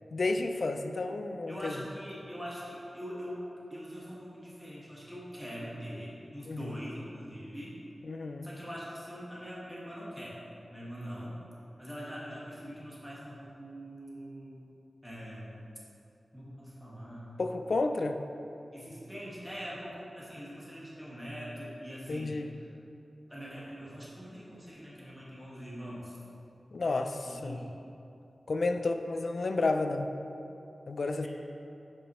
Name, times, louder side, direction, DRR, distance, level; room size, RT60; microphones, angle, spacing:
voice 1, 0.1-1.8 6.5-6.8 8.1-8.5 17.4-18.2 22.1-22.5 26.7-27.6 28.5-30.1 30.9-31.3, left 3 dB, 65° left, 7 dB, 0.5 m, -31 dB
voice 2, 1.5-3.5 3.7-7.8 8.4-10.4 10.7-11.4 11.8-14.6 15.0-15.7 16.3-17.3 18.7-22.7 23.3-26.2 27.2-27.7 31.2-31.3, equal, ahead, -7 dB, 1.9 m, -43 dB
11.0 x 6.1 x 3.2 m, 2.8 s
cardioid pair, 60°, 0 cm